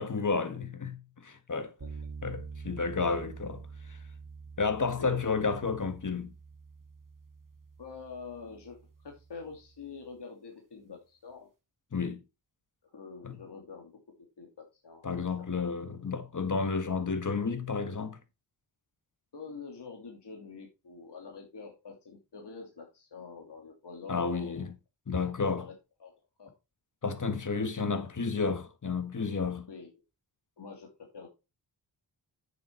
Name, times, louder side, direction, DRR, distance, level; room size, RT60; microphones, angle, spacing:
voice 1, 0.0-1.7 2.2-3.6 3.9-4.0 4.6-6.3 11.9-12.2 13.2-13.4 15.0-18.2 24.1-24.7 25.1-25.7 27.0-29.7, left 4 dB, 40° left, 1.7 m, -31 dB
sound 1, 1.8-10.0, right 5 dB, 45° right, 1.5 m, -47 dB
voice 2, 7.8-11.5 12.9-15.3 15.5-15.7 19.3-24.7 25.2-25.7 26.0-26.1 26.4-26.5 27.6-28.0 29.7-29.9 30.6-31.3, left 5 dB, 60° left, 2.7 m, -46 dB
8.5 x 7.1 x 4.5 m
cardioid pair, 55°, 45 cm